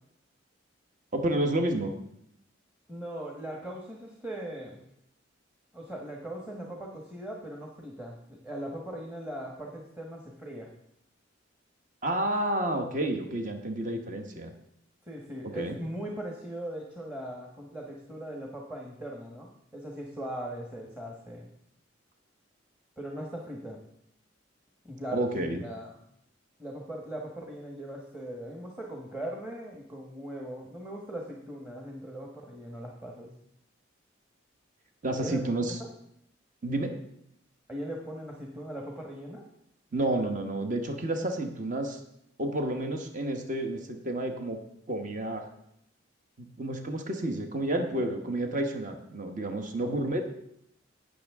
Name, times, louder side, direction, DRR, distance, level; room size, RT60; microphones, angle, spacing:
voice 1, 1.1-1.9 12.0-14.5 15.5-15.8 25.1-25.6 35.0-35.8 36.6-36.9 39.9-42.0 42.4-44.6 44.9-45.5 46.4-50.3, right 1 dB, 40° right, 5 dB, 1.1 m, -30 dB
voice 2, 2.9-4.8 5.7-10.7 15.0-21.5 23.0-23.8 24.8-25.9 26.6-33.3 35.1-35.4 37.7-39.4 49.7-50.0, right 1 dB, 10° right, -1 dB, 1.2 m, -39 dB
17.5 x 6.4 x 3.6 m, 0.75 s
head